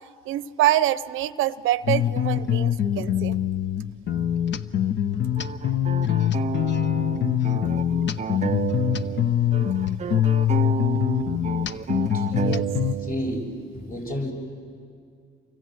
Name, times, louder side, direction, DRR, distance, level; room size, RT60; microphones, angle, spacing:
voice 1, 0.3-3.4 12.3-12.7, right 13 dB, 90° right, 16 dB, 0.7 m, -25 dB
sound 1, 1.8-12.9, left 10 dB, 65° left, 0.8 m, -24 dB
sound 2, 5.4-9.3 9.5-13.3, right 7 dB, 35° right, 0.6 m, -30 dB
voice 2, 13.0-14.3, left 1 dB, 45° left, 1 dB, 6.7 m, -31 dB
29.0 x 24.5 x 7.8 m, 2.3 s
cardioid pair, 90°, 20 cm